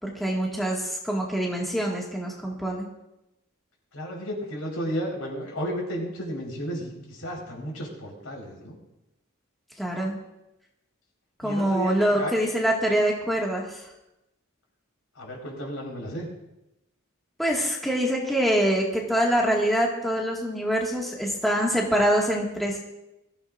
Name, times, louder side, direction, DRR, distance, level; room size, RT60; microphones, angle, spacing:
voice 1, 0.0-2.9 9.8-10.2 11.4-13.8 17.4-22.8, equal, ahead, -3 dB, 1.9 m, -25 dB
voice 2, 3.9-8.7 11.4-12.3 15.1-16.3, equal, 85° left, -2 dB, 4.6 m, -33 dB
21.5 x 15.0 x 2.6 m, 0.90 s
head